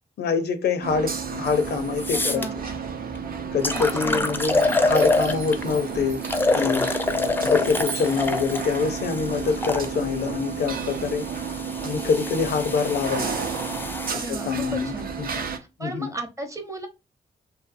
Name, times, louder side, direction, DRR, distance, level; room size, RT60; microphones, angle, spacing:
voice 1, 0.2-2.5 3.5-6.2 6.5-6.9 7.4-11.3 11.8-13.2 14.1-15.4 15.8-16.1, left 5 dB, 70° left, 0.5 m, -25 dB
sound 1, 0.8-15.6, right 6 dB, 55° right, 0.5 m, -32 dB
sound 2, 1.5-1.6 2.0-2.5 3.2-3.3 3.6-5.7 6.2-9.9 10.7-14.1, left 2 dB, 10° left, 0.4 m, -26 dB
voice 2, 2.1-2.6 3.7-4.3 14.1-15.1 15.6-16.9, right 1 dB, 20° right, 0.7 m, -35 dB
Chime, 4.5-10.3, right 5 dB, 85° right, 0.9 m, -41 dB
2.6 x 2.1 x 2.5 m
supercardioid pair, 40°, 18 cm